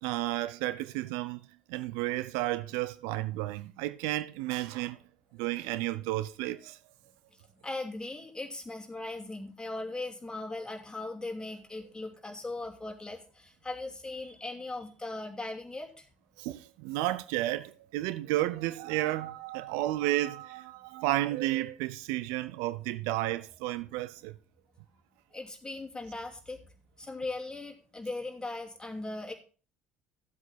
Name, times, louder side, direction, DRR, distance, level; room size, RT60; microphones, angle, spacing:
voice 1, 0.0-1.4 1.7-5.0 5.4-6.8 16.4-24.3, right 16 dB, 65° right, 0.5 m, -32 dB
voice 2, 7.6-16.1 25.3-26.6 27.0-29.3, left 2 dB, 15° left, 2.6 m, -39 dB
14.0 x 8.0 x 4.0 m
figure-of-eight pair, 60°, 6 cm